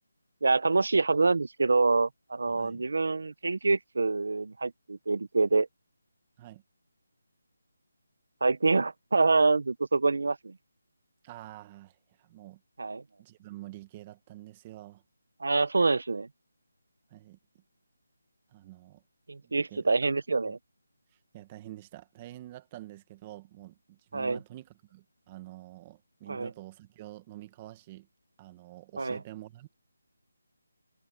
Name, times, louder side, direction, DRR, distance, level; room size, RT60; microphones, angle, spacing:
voice 1, 0.4-5.7 8.4-10.5 12.8-13.0 15.4-16.3 19.3-20.6 24.1-24.4 26.3-26.5 29.0-29.2, right 3 dB, 70° right, 1.1 m, -26 dB
voice 2, 2.5-2.8 6.4-6.6 11.2-12.6 13.2-15.0 17.1-17.4 18.5-19.0 19.4-19.9 20.5-20.6 21.3-28.1 28.4-29.7, right 15 dB, 20° right, 1.6 m, -47 dB
figure-of-eight pair, 170°, 0 cm